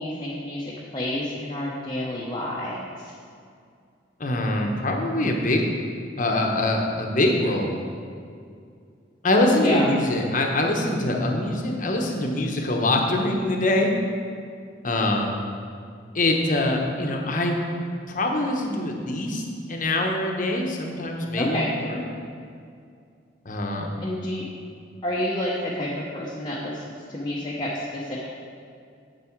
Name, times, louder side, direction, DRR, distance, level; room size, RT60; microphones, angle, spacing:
voice 1, 0.0-3.1 9.6-9.9 21.3-21.7 24.0-24.4 25.0-26.8 27.1-28.3, left 1 dB, 25° left, -6 dB, 1.0 m, -29 dB
voice 2, 4.2-5.7 6.2-7.7 9.2-13.9 14.8-15.3 16.1-17.6 18.1-19.4 19.7-22.0 23.4-23.9, left 1 dB, 45° left, 1 dB, 1.1 m, -24 dB
9.5 x 7.4 x 4.6 m, 2.3 s
head